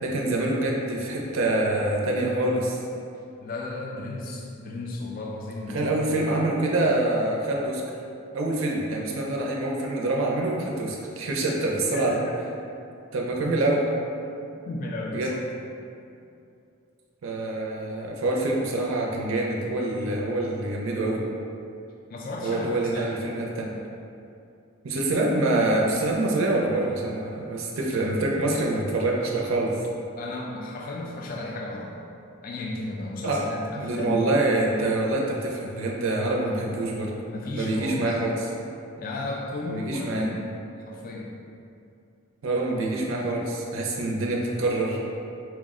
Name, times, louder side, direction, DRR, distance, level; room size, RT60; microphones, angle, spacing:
voice 1, 0.0-2.8 5.7-7.8 8.3-12.2 13.1-13.9 15.1-15.3 17.2-21.2 22.4-23.7 24.8-29.7 33.2-33.5 33.7-37.1 37.5-38.5 39.7-40.3 42.4-45.0, right 2 dB, 70° right, -1 dB, 0.5 m, -26 dB
voice 2, 3.4-6.3 11.5-12.1 12.7-12.9 14.6-15.4 19.9-20.2 22.1-23.2 30.2-32.0 32.4-34.3 36.4-36.6 37.3-38.1 39.0-40.6 40.8-41.3, left 2 dB, 45° left, -2 dB, 0.3 m, -34 dB
4.5 x 2.0 x 3.5 m, 2.6 s
head